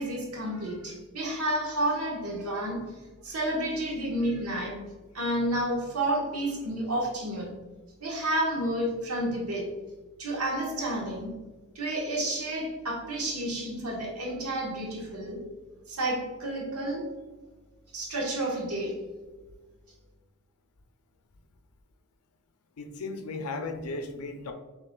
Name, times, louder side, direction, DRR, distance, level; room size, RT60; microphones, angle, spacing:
voice 1, 0.0-2.8 3.2-4.8 5.1-7.5 8.0-9.7 10.2-11.3 11.7-15.4 15.9-17.1 17.9-19.0, right 1 dB, 85° right, -2 dB, 1.2 m, -30 dB
voice 2, 22.8-24.5, left 3 dB, 80° left, 6 dB, 0.5 m, -35 dB
6.5 x 3.0 x 2.3 m, 1.2 s
head